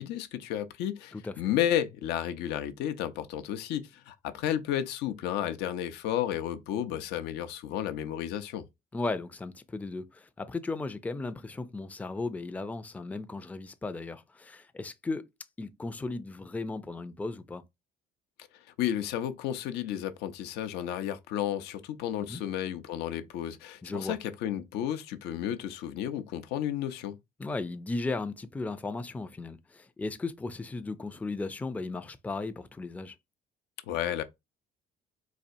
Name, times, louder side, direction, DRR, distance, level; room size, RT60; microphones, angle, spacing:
voice 1, 0.0-8.6 18.5-27.2 33.9-34.2, left 11 dB, 90° left, 0.6 m, -32 dB
voice 2, 8.9-15.3 15.6-17.6 22.2-22.4 23.8-24.2 27.4-33.1, left 3 dB, 10° left, 0.4 m, -36 dB
4.1 x 2.4 x 2.6 m
cardioid pair, 110°, 17 cm